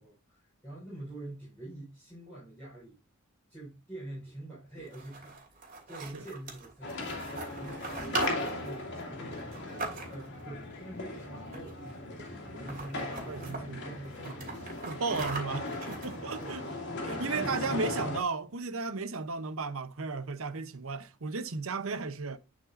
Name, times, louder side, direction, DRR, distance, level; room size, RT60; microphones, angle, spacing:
voice 1, 0.0-3.0 3.5-15.4 16.4-18.0, right 1 dB, 10° left, 5.0 m, -46 dB
sound 1, 4.8-10.4 11.4-11.9 12.2-12.3 12.5-13.6 14.0-16.7, right 3 dB, 40° right, 2.8 m, -41 dB
sound 2, 6.8-18.2, left 2 dB, 55° left, 2.5 m, -38 dB
voice 2, 13.3-13.9 14.2-14.5 14.9-16.6 17.1-22.4, right 4 dB, 65° right, 0.8 m, -35 dB
11.0 x 5.3 x 2.6 m
head